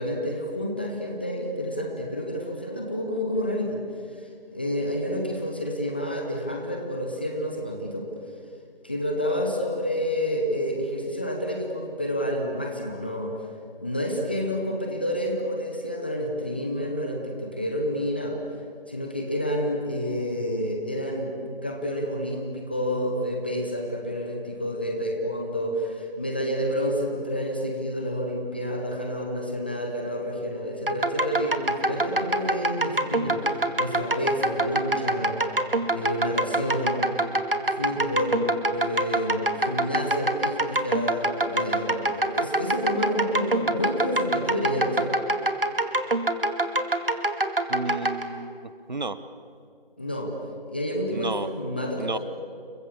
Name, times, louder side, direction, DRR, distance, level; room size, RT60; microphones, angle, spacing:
voice 1, 0.0-3.8 4.2-8.1 8.8-13.3 13.8-18.4 18.9-35.4 35.9-37.1 37.7-45.1 50.0-50.3 50.7-52.2, equal, 10° left, 1 dB, 0.9 m, -29 dB
sound 1, 30.9-48.2, right 2 dB, 65° right, 2.4 m, -25 dB
voice 2, 47.7-49.2 51.1-51.5 52.0-52.2, right 3 dB, 50° right, 14 dB, 1.2 m, -32 dB
29.5 x 24.0 x 7.0 m, 2.4 s
figure-of-eight pair, 160°, 29 cm